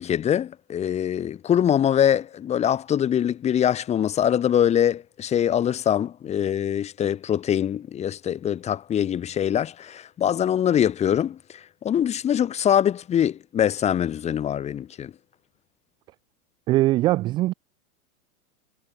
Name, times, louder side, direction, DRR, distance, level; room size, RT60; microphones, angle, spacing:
voice 1, 0.0-15.1, left 9 dB, 15° left, 2.2 m, -23 dB
voice 2, 16.7-17.5, right 16 dB, 10° right, 0.5 m, -21 dB
supercardioid pair, 165°, 46 cm